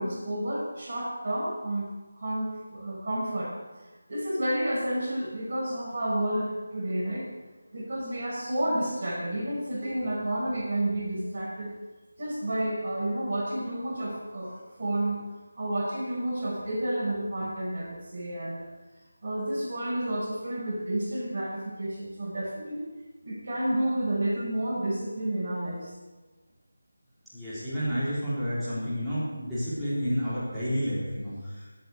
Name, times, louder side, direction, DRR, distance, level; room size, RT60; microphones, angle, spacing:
voice 1, 0.0-1.9 2.2-3.6 4.1-7.3 7.7-11.7 12.2-15.2 15.6-18.7 19.2-22.8 23.2-25.9, right 1 dB, 40° right, -3 dB, 5.1 m, -30 dB
voice 2, 27.3-31.7, equal, ahead, -17 dB, 4.0 m, -30 dB
12.0 x 8.6 x 8.4 m, 1.2 s
figure-of-eight pair, 160°, 0 cm